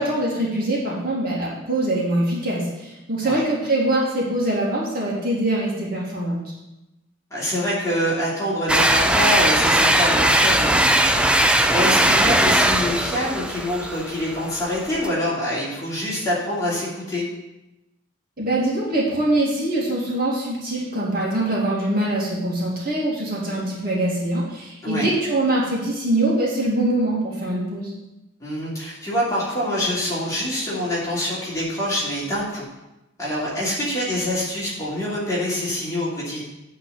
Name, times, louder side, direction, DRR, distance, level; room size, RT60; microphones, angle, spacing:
voice 1, 0.0-6.4 18.4-27.9, right 1 dB, 45° right, -5 dB, 2.3 m, -23 dB
voice 2, 7.3-17.2 24.8-25.1 28.4-32.6 33.2-36.4, left 1 dB, 15° left, -8 dB, 2.8 m, -25 dB
sound 1, 8.7-15.1, right 1 dB, 5° right, 0.3 m, -19 dB
9.4 x 4.1 x 7.0 m, 0.98 s
head